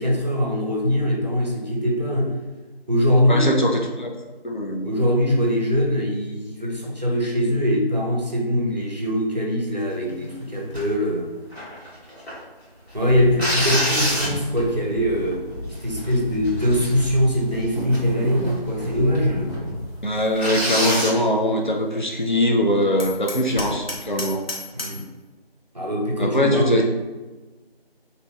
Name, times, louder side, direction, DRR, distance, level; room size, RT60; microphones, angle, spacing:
voice 1, 0.0-2.3 2.9-3.6 4.8-11.3 12.9-15.4 15.8-19.5 24.7-25.0 25.7-26.8, equal, 45° right, -1 dB, 0.6 m, -22 dB
voice 2, 3.3-4.1 4.4-4.9 20.0-24.4 26.2-26.8, left 1 dB, 50° left, 1 dB, 0.4 m, -22 dB
sound 1, 10.7-10.9 11.5-12.4 13.4-14.7 15.3-15.4 15.7-16.1 16.4-17.3 17.9-18.2 18.5-18.6 19.2-19.3 19.5-19.6 20.4-21.2 23.5-23.9, equal, 85° left, 1.4 m, -26 dB
sound 2, 12.9-20.9, left 1 dB, ahead, 0.9 m, -34 dB
Hammer, 23.0-25.1, left 2 dB, 70° left, 0.8 m, -33 dB
2.7 x 2.2 x 3.1 m, 1.2 s
figure-of-eight pair, 180°, 30 cm